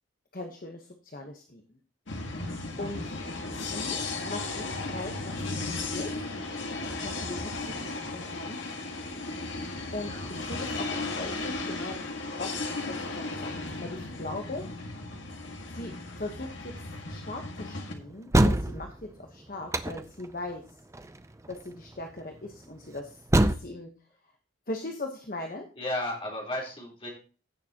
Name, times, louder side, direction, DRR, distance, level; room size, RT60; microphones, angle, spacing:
voice 1, 0.3-1.6 2.3-2.5 2.8-3.1 3.7-6.3 7.0-8.6 9.9-12.0 12.4-12.6 12.9-13.5 13.8-14.6 15.7-15.9 16.2-16.7 17.1-18.9 19.2-20.6 21.5-23.9 24.7-25.6, left 2 dB, 45° left, 3 dB, 1.1 m, -39 dB
sound 1, 2.1-17.9, left 3 dB, 70° left, 1.8 m, -35 dB
sound 2, 18.3-19.0 19.7-20.3 20.9-21.2 21.5-21.6 23.3-23.5, right 1 dB, 15° right, 0.4 m, -22 dB
voice 2, 25.8-27.1, left 1 dB, 25° left, -2 dB, 3.7 m, -34 dB
16.0 x 6.8 x 2.9 m, 0.37 s
head